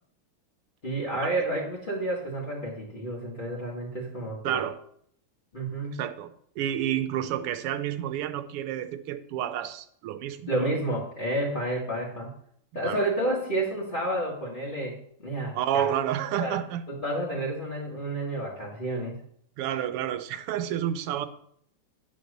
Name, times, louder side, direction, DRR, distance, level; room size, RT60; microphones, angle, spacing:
voice 1, 0.8-4.6 5.5-6.0 10.5-12.3 12.7-15.9 16.4-16.6 16.9-19.2, right 1 dB, 25° left, 1.9 m, -30 dB
voice 2, 4.4-4.8 6.0-10.5 12.8-13.0 15.5-16.8 19.6-21.3, right 10 dB, 90° right, 1.7 m, -30 dB
10.5 x 4.2 x 6.6 m
omnidirectional pair, 2.4 m